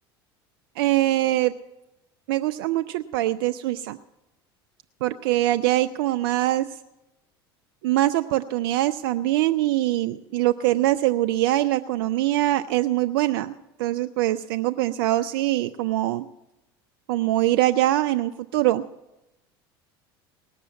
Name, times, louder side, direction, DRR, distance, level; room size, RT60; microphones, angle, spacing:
voice 1, 0.8-1.5 2.3-4.0 5.0-6.7 7.8-16.3 17.1-18.8, right 15 dB, 75° right, 11 dB, 0.4 m, -23 dB
18.5 x 6.8 x 8.4 m, 0.94 s
hypercardioid pair, 80°, 13 cm